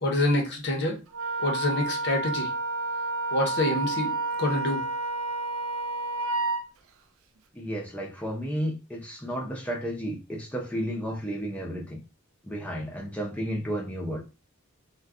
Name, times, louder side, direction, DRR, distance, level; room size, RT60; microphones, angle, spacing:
voice 1, 0.0-1.0 1.4-2.5 3.3-4.1 4.4-4.8, left 1 dB, 55° left, 1 dB, 0.8 m, -26 dB
Wind instrument woodwind instrument, 1.1-6.6, right 3 dB, 65° right, 0.4 m, -30 dB
voice 2, 7.5-12.0 12.5-14.2, equal, 5° left, -2 dB, 0.5 m, -32 dB
2.4 x 2.2 x 3.5 m, 0.31 s
head